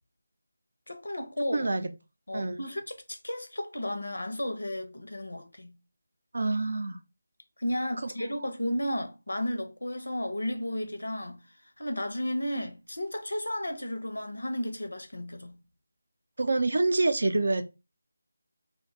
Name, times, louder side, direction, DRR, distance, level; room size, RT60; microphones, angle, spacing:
voice 1, 0.9-1.7 2.3-5.7 7.6-11.4 11.8-15.6, left 1 dB, 85° left, 0.6 m, -33 dB
voice 2, 1.5-1.9 2.3-2.6 6.3-7.0 16.4-17.6, right 2 dB, 65° right, 0.4 m, -26 dB
2.4 x 2.2 x 3.5 m
figure-of-eight pair, 165°, 0 cm